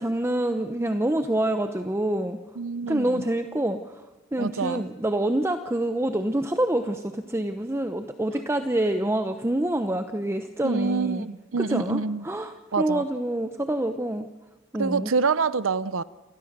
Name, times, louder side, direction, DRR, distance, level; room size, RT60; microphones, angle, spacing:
voice 1, 0.0-2.4 2.8-4.0 4.3-11.2 11.5-14.3 14.7-15.1, right 1 dB, 15° right, 7 dB, 0.8 m, -26 dB
voice 2, 2.6-3.2 4.4-4.8 10.6-12.2 12.7-13.0 14.8-16.0, right 5 dB, 90° right, 17 dB, 0.7 m, -26 dB
28.5 x 22.0 x 6.7 m, 1.2 s
head